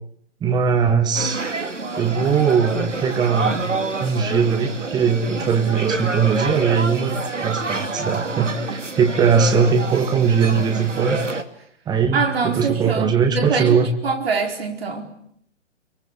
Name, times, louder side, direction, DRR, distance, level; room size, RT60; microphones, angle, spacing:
voice 1, 0.4-1.4 2.0-7.1 7.4-11.2 11.9-13.9, right 6 dB, 10° right, 1.7 m, -20 dB
sound 1, 1.1-11.4, right 3 dB, 75° right, 2.5 m, -27 dB
voice 2, 12.1-15.1, right 5 dB, 55° right, 4.6 m, -24 dB
25.0 x 23.5 x 9.9 m
figure-of-eight pair, 130°, 37 cm